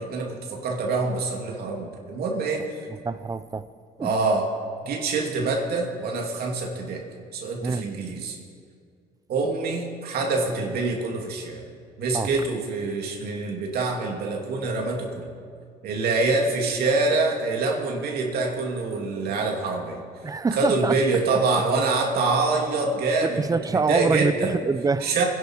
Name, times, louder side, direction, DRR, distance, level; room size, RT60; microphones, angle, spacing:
voice 1, 0.0-2.8 4.0-4.5 4.8-7.0 7.3-8.4 9.3-11.6 12.0-15.3 15.8-20.0 20.5-23.4 23.7-24.6 25.0-25.2, right 3 dB, 65° right, 0 dB, 2.7 m, -25 dB
voice 2, 3.0-3.7 4.0-4.1 7.6-7.9 12.1-12.3 20.2-20.9 23.2-25.1, right 4 dB, 20° right, 14 dB, 0.6 m, -25 dB
26.5 x 11.0 x 4.8 m, 2.2 s
cardioid pair, 110°, 17 cm